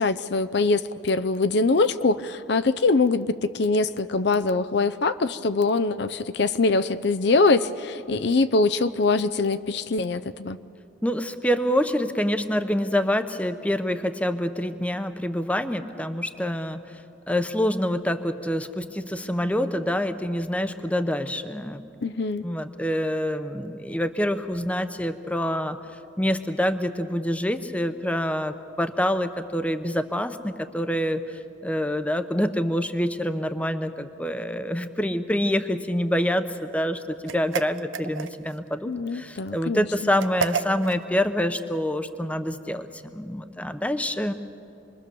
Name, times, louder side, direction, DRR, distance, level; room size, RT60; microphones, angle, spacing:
voice 1, 0.0-10.6 22.0-22.5 38.9-39.9, left 3 dB, 60° left, 12 dB, 0.6 m, -23 dB
voice 2, 11.0-17.0 17.3-21.8 22.4-25.8 26.2-44.3, equal, 5° left, 9 dB, 0.8 m, -26 dB
sound 1, 37.3-38.6 40.2-41.0, right 5 dB, 85° right, 0.7 m, -30 dB
27.5 x 22.0 x 6.9 m, 2.8 s
head